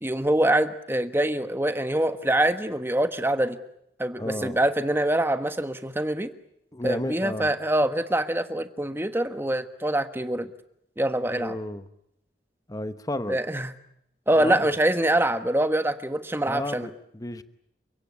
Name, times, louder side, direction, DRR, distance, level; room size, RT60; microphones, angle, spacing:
voice 1, 0.0-3.6 4.0-6.3 6.8-10.5 11.0-11.6 13.3-13.7 14.3-16.9, right 1 dB, 15° right, 10 dB, 1.3 m, -24 dB
voice 2, 4.2-4.6 6.7-7.5 11.3-11.8 12.7-13.4 14.3-14.7 16.5-17.4, left 1 dB, 20° left, 11 dB, 1.0 m, -32 dB
30.0 x 17.0 x 9.7 m, 0.78 s
head